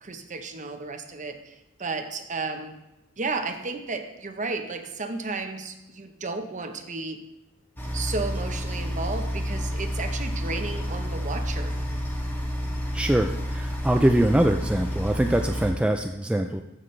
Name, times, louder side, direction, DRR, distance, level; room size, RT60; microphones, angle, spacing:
voice 1, 0.0-2.7 3.2-7.2 7.9-11.8, right 3 dB, 35° right, 6 dB, 0.8 m, -33 dB
sound 1, 7.8-15.7, equal, 10° left, 1.4 m, -30 dB
voice 2, 12.9-16.6, right 1 dB, 5° right, 4 dB, 0.3 m, -23 dB
14.5 x 6.0 x 3.2 m, 0.95 s
head